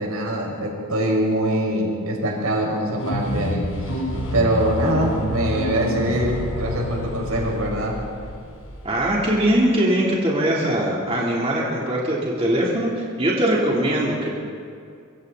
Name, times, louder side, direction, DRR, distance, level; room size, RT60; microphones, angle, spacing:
voice 1, 0.0-4.0 4.3-8.0, right 1 dB, 80° right, -1 dB, 5.7 m, -23 dB
sound 1, 2.9-9.6, left 1 dB, 70° left, 4.3 m, -28 dB
voice 2, 8.8-14.4, right 1 dB, 30° right, -5 dB, 3.4 m, -21 dB
26.0 x 24.0 x 4.1 m, 2.4 s
head